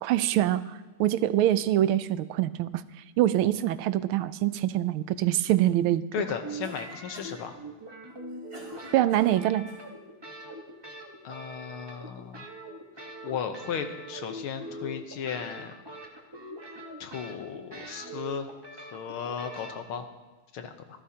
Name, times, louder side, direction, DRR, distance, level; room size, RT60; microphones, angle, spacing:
voice 1, 0.0-2.8 3.2-6.0 8.9-9.7, right 13 dB, 80° right, 14 dB, 1.4 m, -24 dB
voice 2, 6.1-7.6 11.2-12.5 13.2-15.7 17.0-20.1 20.5-20.7, left 7 dB, 80° left, 7 dB, 1.9 m, -35 dB
sound 1, 6.2-19.8, right 1 dB, 15° right, 0.9 m, -42 dB
Cough, 6.6-7.5 8.1-9.9, right 1 dB, 30° right, 2.9 m, -48 dB
26.0 x 11.0 x 2.9 m, 1.2 s
omnidirectional pair, 2.3 m